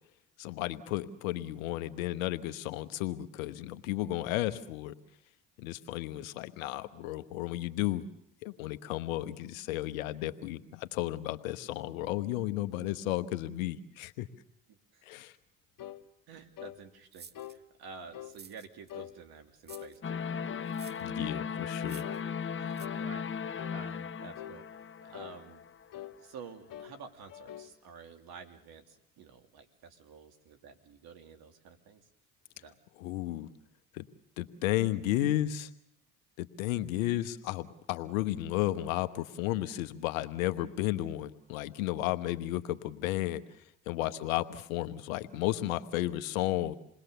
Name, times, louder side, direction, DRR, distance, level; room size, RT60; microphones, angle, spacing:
voice 1, 0.4-5.0 5.6-8.1 8.4-14.3 15.0-15.4 21.0-22.0 33.0-33.5 33.9-34.1 34.4-35.7 36.4-43.4 43.9-46.7, left 15 dB, 85° left, 11 dB, 1.2 m, -33 dB
voice 2, 14.7-15.2 16.3-20.5 21.2-21.4 22.6-23.2 23.7-25.7 26.2-32.0 32.5-32.8 44.0-44.1, right 5 dB, 65° right, 5 dB, 3.0 m, -50 dB
sound 1, 15.8-16.0 16.6-16.8 17.3-17.6 18.1-18.4 18.9-19.1 19.7-19.9 20.4-20.7 21.2-21.5 22.0-22.2 22.8-23.1 23.6-23.8 24.3-24.6 25.1-25.4 25.9-26.2 26.7-27.0 27.3-27.7, left 12 dB, 55° left, 1.5 m, -44 dB
sound 2, 17.1-17.6 18.2-18.9 19.6-20.0 20.7-21.1 21.8-22.2 22.7-22.9, right 5 dB, 25° right, 1.0 m, -51 dB
sound 3, 20.0-26.1, left 6 dB, 30° left, 1.0 m, -37 dB
28.0 x 20.5 x 6.9 m, 0.74 s
hypercardioid pair, 65°, 40 cm